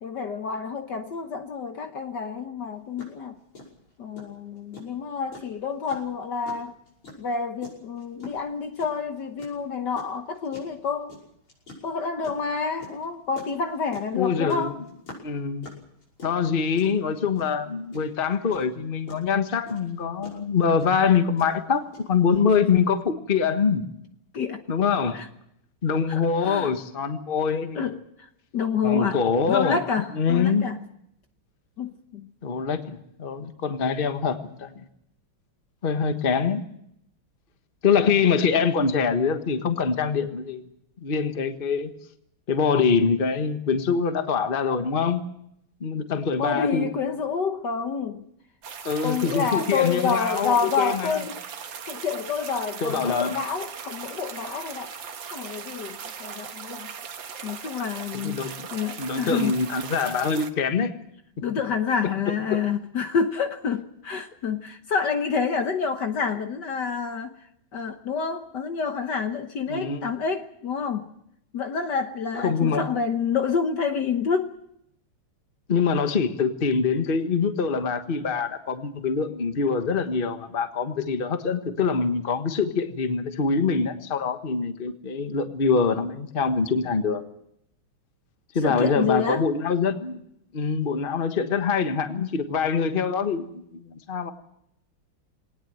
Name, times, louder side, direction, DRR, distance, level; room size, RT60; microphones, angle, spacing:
voice 1, 0.0-3.4 4.0-6.7 7.2-11.2 11.8-14.8 24.3-24.6 25.1-25.3 26.1-26.7 27.7-28.3 28.5-29.2 29.5-30.8 31.8-32.3 46.4-48.2 49.0-51.4 51.9-55.0 55.3-56.9 57.4-59.5 61.4-67.3 67.7-71.1 71.5-74.6 88.6-89.4, left 6 dB, 55° left, 1.6 m, -28 dB
sound 1, 2.6-2.7 3.0-3.2 3.6-22.4, left 2 dB, 75° left, 6.8 m, -44 dB
voice 2, 14.1-14.8 15.2-15.7 16.2-23.8 24.7-25.2 25.8-27.9 28.8-29.8 30.1-30.7 32.4-34.8 35.8-36.6 37.8-40.6 41.0-41.9 42.5-45.2 45.8-46.9 48.8-51.2 52.8-53.3 58.1-58.5 59.0-60.9 62.5-62.6 69.7-70.1 72.4-72.8 75.7-87.2 88.5-90.2 90.5-94.3, left 5 dB, 30° left, 1.3 m, -24 dB
sound 2, 48.6-60.5, right 7 dB, 60° right, 2.0 m, -38 dB
22.0 x 19.0 x 7.8 m
omnidirectional pair, 2.4 m